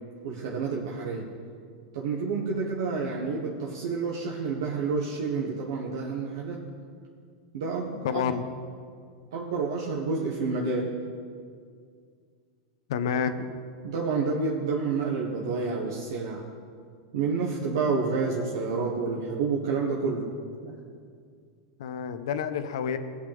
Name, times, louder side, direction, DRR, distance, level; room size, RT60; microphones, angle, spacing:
voice 1, 0.2-1.3 1.9-6.7 7.5-8.2 9.3-10.9 13.8-16.4 17.1-20.3 20.6-20.7, right 4 dB, 85° right, -2 dB, 1.3 m, -29 dB
voice 2, 8.0-8.4 12.9-13.3 21.8-23.0, left 7 dB, 75° left, 10 dB, 0.8 m, -28 dB
17.5 x 8.2 x 3.5 m, 2.2 s
supercardioid pair, 135°, 3 cm